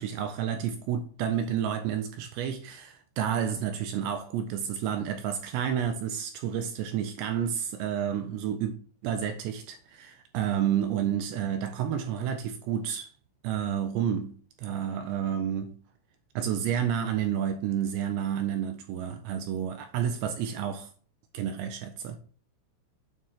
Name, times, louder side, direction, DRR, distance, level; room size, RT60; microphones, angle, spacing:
voice 1, 0.0-8.7 9.0-13.1 13.4-15.8 16.4-20.9 21.3-22.2, right 9 dB, 85° right, 2.5 m, -30 dB
9.0 x 3.2 x 5.6 m
omnidirectional pair, 5.6 m